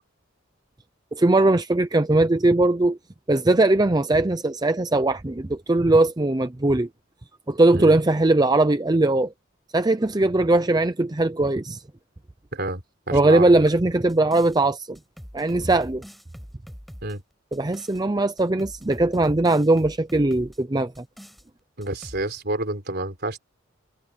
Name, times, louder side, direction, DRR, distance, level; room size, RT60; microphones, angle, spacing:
voice 1, 1.1-3.0 3.3-6.9 7.5-9.3 9.7-11.8 13.1-15.0 15.3-16.0 17.5-21.0, right 2 dB, 20° right, 0.6 m, -20 dB
voice 2, 12.5-12.8 13.1-13.7 17.0-17.2 21.8-23.4, right 2 dB, 50° right, 4.1 m, -29 dB
sound 1, 13.5-14.6 14.9-18.0 18.4-20.6 20.9-21.4 21.8-22.2, equal, ahead, 7.2 m, -43 dB
head